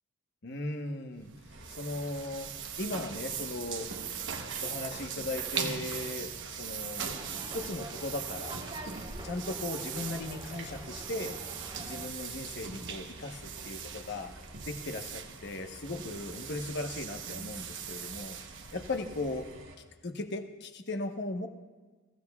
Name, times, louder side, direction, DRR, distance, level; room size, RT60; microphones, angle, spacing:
voice 1, 0.4-1.3 1.7-2.5 2.8-3.9 4.6-7.1 7.5-8.6 9.2-11.4 11.8-14.3 14.6-18.4 18.7-19.5 20.0-21.5, left 2 dB, 55° left, 5 dB, 1.1 m, -37 dB
sound 1, 1.2-19.6, right 7 dB, 60° right, 1.0 m, -40 dB
sound 2, 1.5-19.8, right 2 dB, 85° right, 4.6 m, -51 dB
sound 3, 7.0-12.1, right 2 dB, 25° right, 1.4 m, -45 dB
23.0 x 15.5 x 2.4 m, 1.3 s
head